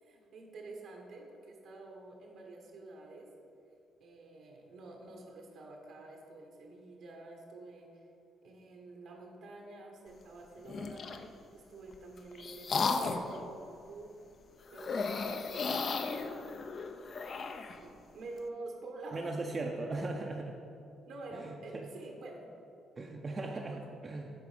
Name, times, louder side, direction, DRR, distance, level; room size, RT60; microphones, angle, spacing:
voice 1, 0.0-3.3 4.0-8.1 8.4-11.1 11.5-14.1 14.7-16.1 17.8-19.3 21.1-22.4 23.5-23.8, right 2 dB, 75° right, 0 dB, 1.1 m, -48 dB
sound 1, 10.6-11.3 11.9-13.4 14.7-17.8, left 4 dB, 50° left, 0.5 m, -35 dB
voice 2, 19.1-20.6 21.3-21.9 23.0-24.3, right 2 dB, 35° right, 1 dB, 0.5 m, -38 dB
8.4 x 3.7 x 5.0 m, 2.5 s
cardioid pair, 90°, 0 cm